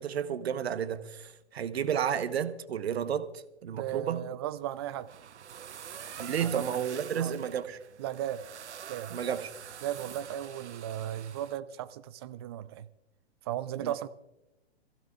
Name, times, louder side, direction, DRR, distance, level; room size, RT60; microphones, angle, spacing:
voice 1, 0.0-4.2 6.2-7.8 9.1-9.5 13.8-14.1, right 8 dB, 65° right, 1.1 m, -32 dB
voice 2, 3.7-5.1 6.4-6.7 7.2-7.5 8.0-8.4 8.9-9.1 9.8-12.9 13.5-14.1, right 12 dB, 25° right, 0.4 m, -36 dB
sound 1, 4.7-11.6, right 9 dB, 85° right, 0.6 m, -46 dB
25.5 x 15.5 x 2.4 m
hypercardioid pair, 130°, 33 cm